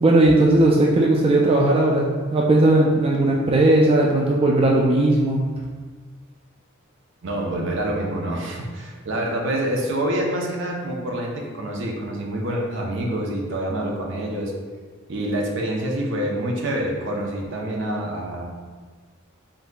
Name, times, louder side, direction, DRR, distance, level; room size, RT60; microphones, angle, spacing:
voice 1, 0.0-2.1 2.3-5.4, right 2 dB, 30° right, -2 dB, 0.3 m, -17 dB
voice 2, 7.2-14.5 15.1-18.4, right 1 dB, 65° right, 0 dB, 0.7 m, -26 dB
4.0 x 3.7 x 2.2 m, 1.5 s
head